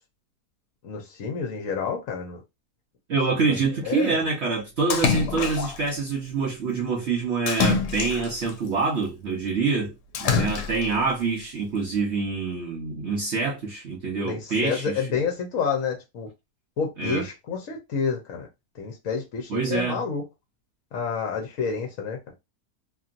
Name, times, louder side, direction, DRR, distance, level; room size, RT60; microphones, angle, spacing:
voice 1, 0.8-2.4 3.5-4.3 14.2-16.3 16.8-18.5 18.8-20.2 20.9-22.2, left 6 dB, 60° left, 1.1 m, -29 dB
voice 2, 3.1-15.0 17.0-17.3 19.5-20.0, right 4 dB, 55° right, 0.9 m, -26 dB
Splash splatter, 4.9-5.9 7.5-8.5 10.2-11.0, left 6 dB, 85° left, 1.2 m, -25 dB
2.9 x 2.7 x 2.4 m
omnidirectional pair, 1.7 m